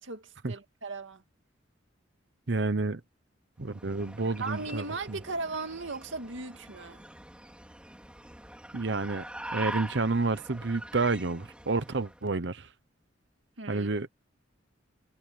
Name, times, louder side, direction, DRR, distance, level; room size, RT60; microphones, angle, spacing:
voice 1, 0.0-1.2 4.4-7.0 13.6-13.9, right 3 dB, 90° right, 2.2 m, -37 dB
voice 2, 2.5-3.0 3.6-5.2 8.7-9.2 9.5-12.7 13.7-14.1, right 3 dB, 65° right, 0.9 m, -30 dB
sound 1, 3.6-12.2, right 1 dB, 5° right, 4.3 m, -44 dB
head